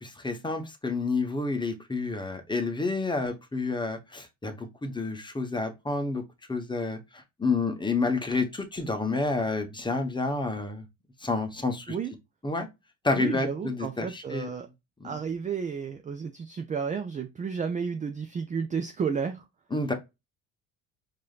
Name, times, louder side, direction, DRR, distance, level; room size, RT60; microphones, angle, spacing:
voice 1, 0.0-6.2 6.5-10.8 11.2-11.9 12.4-12.7 13.0-14.5 15.0-15.2 19.7-19.9, left 3 dB, 10° left, 0.9 m, -29 dB
voice 2, 13.2-14.7 15.0-19.4, right 6 dB, 20° right, 0.4 m, -32 dB
4.8 x 2.8 x 2.3 m
hypercardioid pair, 60°, 40 cm